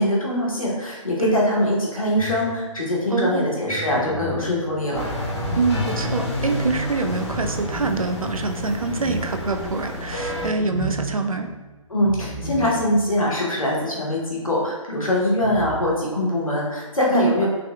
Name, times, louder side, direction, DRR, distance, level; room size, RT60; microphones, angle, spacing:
voice 1, 0.0-5.1 11.9-17.5, left 1 dB, 80° left, -4 dB, 1.2 m, -22 dB
sound 1, 2.1-2.9 3.6-6.4 7.1-13.3 13.6-13.7 15.4-15.8, right 1 dB, 5° right, 0.6 m, -35 dB
voice 2, 3.1-3.5 5.6-11.5 17.1-17.4, right 3 dB, 90° right, 5 dB, 0.5 m, -25 dB
sound 2, 4.9-10.5, equal, 55° left, 0.9 m, -29 dB
3.4 x 3.1 x 2.4 m, 1.2 s
figure-of-eight pair, 140°, 17 cm